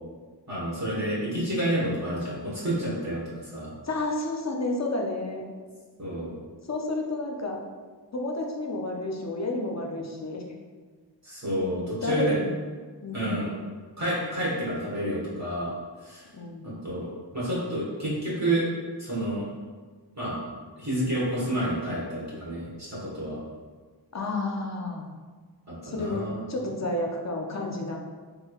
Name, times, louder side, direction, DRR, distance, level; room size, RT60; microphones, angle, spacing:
voice 1, 0.5-3.7 6.0-6.3 11.2-12.3 13.1-13.4 14.0-15.7 16.0-16.3 16.6-18.7 19.0-19.5 20.2-20.4 20.8-23.4 25.7-26.4, right 1 dB, 40° right, -8 dB, 1.3 m, -29 dB
voice 2, 3.8-5.4 6.6-7.6 8.1-10.6 12.0-12.6 13.0-13.7 16.3-16.7 24.1-25.1 25.8-28.0, left 2 dB, 40° left, 1 dB, 0.5 m, -31 dB
3.5 x 3.1 x 2.3 m, 1.5 s
wide cardioid pair, 60°, 43 cm